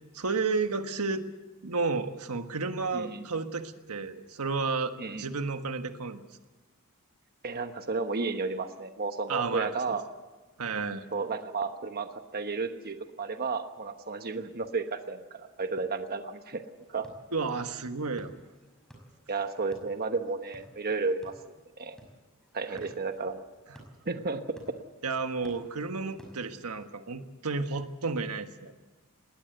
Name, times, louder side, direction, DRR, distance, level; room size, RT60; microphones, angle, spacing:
voice 1, 0.1-1.3 1.6-6.2 9.3-10.0 10.6-11.0 17.3-18.3 22.7-22.8 25.0-28.7, right 4 dB, 80° right, 8 dB, 1.4 m, -32 dB
voice 2, 2.9-3.3 5.0-5.2 7.4-10.0 11.1-16.6 16.9-17.1 19.3-21.3 21.8-22.0 22.5-23.5 24.0-24.4, right 4 dB, 45° right, 7 dB, 1.1 m, -32 dB
sound 1, 16.8-26.9, equal, 5° left, 5.6 m, -56 dB
20.5 x 18.5 x 8.0 m, 1.3 s
head